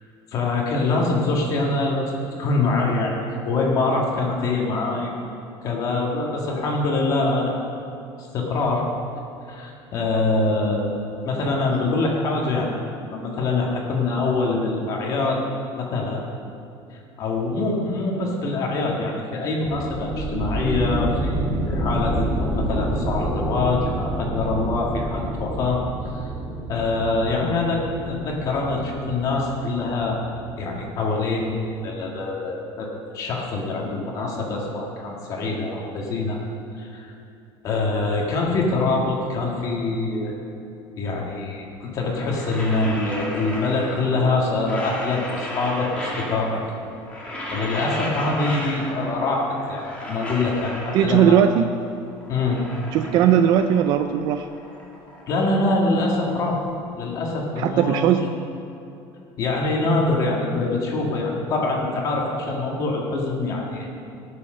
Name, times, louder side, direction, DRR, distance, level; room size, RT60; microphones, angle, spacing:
voice 1, 0.3-3.1 3.4-5.2 5.6-7.5 8.3-8.8 9.5-11.0 11.2-12.7 13.0-15.4 15.7-16.2 16.9-25.8 26.1-26.3 26.7-27.8 28.1-30.2 30.6-32.9 33.1-36.4 36.7-37.1 37.6-40.3 41.0-46.6 47.5-51.4 52.3-52.6 55.3-56.6 57.0-58.1 59.4-63.9, left 3 dB, 40° left, -1 dB, 1.9 m, -24 dB
sound 1, 19.6-31.1, right 1 dB, 10° right, 2.6 m, -28 dB
sound 2, 42.0-44.2 44.5-46.7 47.0-49.2 49.5-51.6 52.0-54.0 54.3-56.5, left 1 dB, 15° left, 2.0 m, -34 dB
voice 2, 50.9-51.7 52.9-54.5 57.6-58.3, right 9 dB, 50° right, 8 dB, 0.4 m, -18 dB
17.0 x 6.9 x 6.5 m, 2.7 s
cardioid pair, 175°, 9 cm